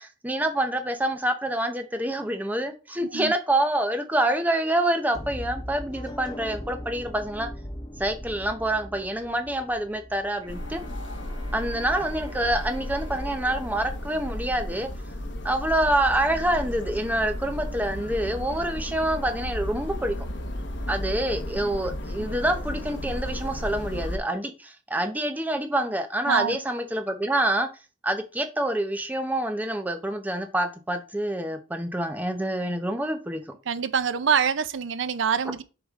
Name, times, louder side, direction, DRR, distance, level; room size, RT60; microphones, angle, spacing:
voice 1, 0.0-7.5 8.0-10.8 11.5-14.9 15.4-20.2 20.9-27.7 28.0-33.5, right 1 dB, 10° right, 0.7 m, -27 dB
voice 2, 3.0-3.3 26.3-26.6 33.7-35.6, right 7 dB, 65° right, 0.5 m, -25 dB
sound 1, 5.1-11.1, equal, 20° left, 0.8 m, -39 dB
Bowed string instrument, 10.4-15.7, left 1 dB, 30° right, 1.8 m, -50 dB
sound 2, 10.5-24.2, left 1 dB, 60° left, 1.1 m, -34 dB
7.3 x 4.9 x 3.6 m
head